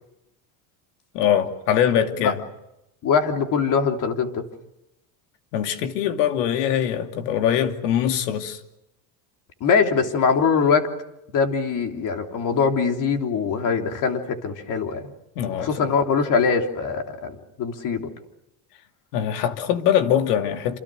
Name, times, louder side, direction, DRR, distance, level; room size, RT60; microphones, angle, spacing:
voice 1, 1.1-2.4 5.5-8.6 15.4-15.9 19.1-20.8, left 9 dB, 85° left, 2.8 m, -22 dB
voice 2, 3.0-4.5 9.6-10.9 11.3-15.1 15.6-18.1, left 5 dB, 40° left, 3.4 m, -22 dB
28.5 x 27.5 x 6.5 m
cardioid pair, 140°, 46 cm